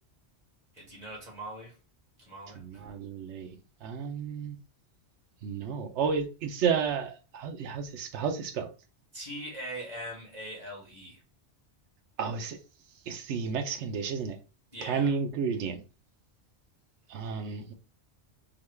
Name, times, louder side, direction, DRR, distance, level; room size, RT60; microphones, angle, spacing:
voice 1, 0.7-1.7 2.3-2.8 9.1-11.2 14.7-15.2, right 1 dB, 40° right, 1.7 m, -41 dB
voice 2, 2.5-3.5 3.8-4.6 5.4-8.7 12.2-12.6 13.1-14.4 14.8-15.8 17.1-17.7, right 6 dB, 85° right, 0.9 m, -31 dB
3.9 x 2.3 x 3.2 m
omnidirectional pair, 1.1 m